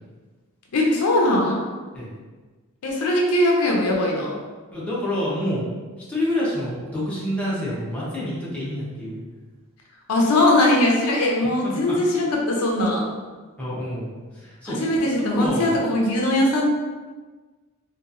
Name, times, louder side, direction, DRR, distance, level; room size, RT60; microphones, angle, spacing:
voice 1, 0.7-1.6 2.8-4.4 10.1-13.1 14.7-16.7, left 1 dB, 85° left, -1 dB, 0.5 m, -20 dB
voice 2, 4.7-5.7 6.1-9.2 11.6-12.0 13.6-15.8, left 1 dB, 5° left, -8 dB, 0.7 m, -28 dB
2.8 x 2.2 x 2.4 m, 1.3 s
head